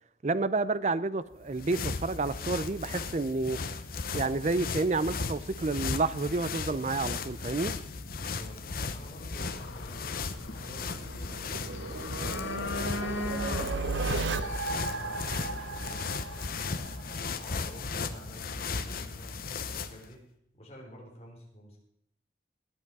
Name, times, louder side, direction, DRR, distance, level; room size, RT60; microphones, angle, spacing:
voice 1, 0.2-3.6 4.1-7.8, right 3 dB, 40° right, 0.5 m, -30 dB
sound 1, 1.3-20.1, left 4 dB, 50° left, 0.8 m, -36 dB
voice 2, 8.2-10.1 10.5-13.2 14.4-16.2 16.7-20.2 20.5-21.8, equal, 35° left, 4.0 m, -49 dB
sound 2, 9.3-16.7, left 3 dB, 85° left, 1.3 m, -41 dB
sound 3, 10.4-17.2, right 3 dB, 80° right, 0.9 m, -35 dB
18.5 x 8.3 x 4.8 m
head